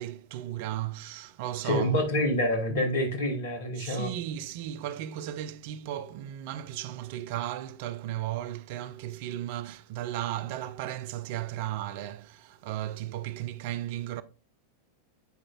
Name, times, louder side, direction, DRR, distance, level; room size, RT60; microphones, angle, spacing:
voice 1, 0.0-2.0 3.8-14.2, right 12 dB, 50° right, 0.4 m, -35 dB
voice 2, 1.6-4.1, left 1 dB, 55° left, 1.5 m, -27 dB
8.1 x 4.9 x 2.4 m
figure-of-eight pair, 90°, 0 cm